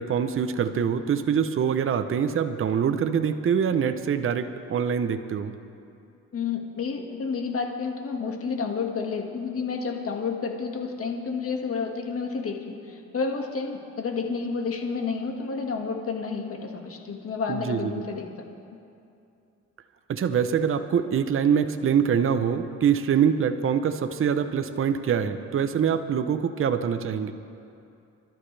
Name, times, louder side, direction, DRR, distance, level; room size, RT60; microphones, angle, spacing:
voice 1, 0.0-5.5 17.5-17.9 20.1-27.3, right 7 dB, 45° right, 9 dB, 0.8 m, -24 dB
voice 2, 6.3-18.3, left 5 dB, 50° left, 2 dB, 1.9 m, -30 dB
25.5 x 12.5 x 3.4 m, 2.6 s
cardioid pair, 90°, 30 cm